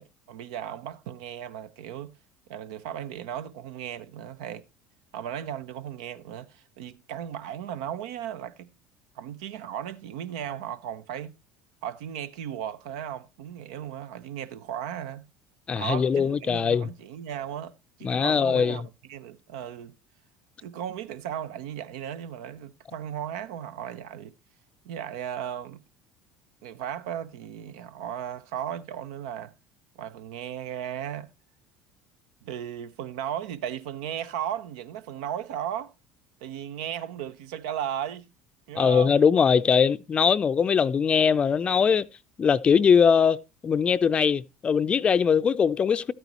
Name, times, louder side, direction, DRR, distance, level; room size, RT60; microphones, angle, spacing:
voice 1, 0.0-2.2 2.5-4.6 5.1-8.7 9.2-11.3 11.8-15.3 15.8-17.7 18.0-19.9 20.6-24.3 24.8-25.8 26.6-29.5 30.0-31.3 32.4-35.9 36.4-38.3 38.7-39.1, right 10 dB, 80° right, 0.6 m, -36 dB
voice 2, 15.7-16.9 18.0-18.8 38.8-42.1 42.4-46.1, left 6 dB, 30° left, 0.4 m, -21 dB
12.5 x 9.1 x 2.9 m
hypercardioid pair, 80°, 4 cm